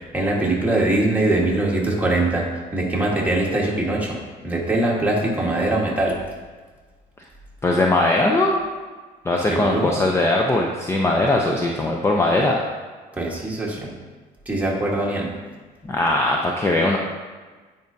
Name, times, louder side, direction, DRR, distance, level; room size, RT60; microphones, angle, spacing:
voice 1, 0.1-4.2 4.4-6.2 9.5-9.9 13.2-13.9 14.4-15.3, right 2 dB, 10° right, -3 dB, 1.5 m, -22 dB
voice 2, 7.6-8.6 9.2-12.6 15.8-17.0, left 2 dB, 15° left, 0 dB, 0.5 m, -20 dB
9.2 x 5.1 x 2.7 m, 1.4 s
cardioid pair, 110°, 17 cm